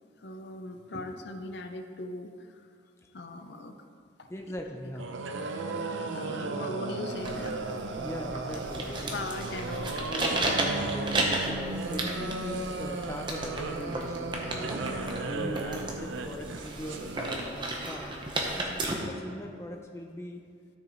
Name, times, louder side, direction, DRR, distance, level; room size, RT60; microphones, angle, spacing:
voice 1, 0.2-2.6 3.1-3.8 4.2-4.3 6.1-7.8 9.1-10.3 15.4-15.5 18.7-19.1, left 2 dB, 60° left, 6 dB, 0.6 m, -40 dB
voice 2, 4.3-5.0 6.2-6.7 8.0-9.3 10.4-14.9 15.2-17.0 17.5-18.1 18.5-20.4, left 1 dB, 15° left, 2 dB, 0.4 m, -41 dB
sound 1, 5.0-17.4, right 3 dB, 80° right, 0.6 m, -35 dB
sound 2, 7.1-18.9, right 2 dB, 25° right, 0.8 m, -34 dB
13.5 x 6.3 x 3.0 m, 2.3 s
head